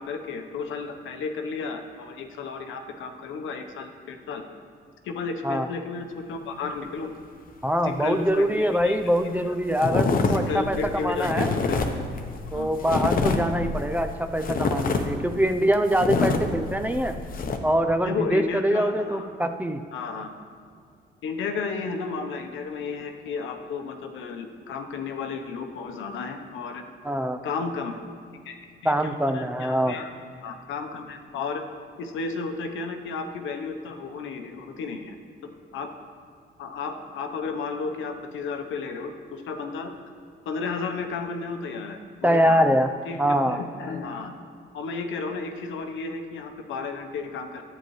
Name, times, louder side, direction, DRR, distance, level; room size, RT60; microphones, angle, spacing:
voice 1, 0.0-4.4 5.0-7.1 7.8-9.0 9.2-9.3 10.5-11.8 12.5-12.7 16.2-16.4 18.0-19.3 19.9-20.3 21.2-26.8 27.4-28.0 28.4-28.6 28.8-28.9 29.3-30.1 30.4-31.6 32.0-35.2 35.4-35.9 36.6-39.9 40.5-42.6 43.1-44.4 44.7-47.6, left 4 dB, 80° left, 5 dB, 0.9 m, -33 dB
voice 2, 7.6-11.5 12.5-17.2 17.6-19.8 27.0-27.4 28.8-29.9 42.2-42.9 43.2-43.6, equal, 10° right, 7 dB, 0.5 m, -24 dB
sound 1, 8.8-8.9 9.1-9.4 9.7-17.6, left 4 dB, 45° left, 0.9 m, -26 dB
10.5 x 8.9 x 3.1 m, 2.2 s
cardioid pair, 90°, 20 cm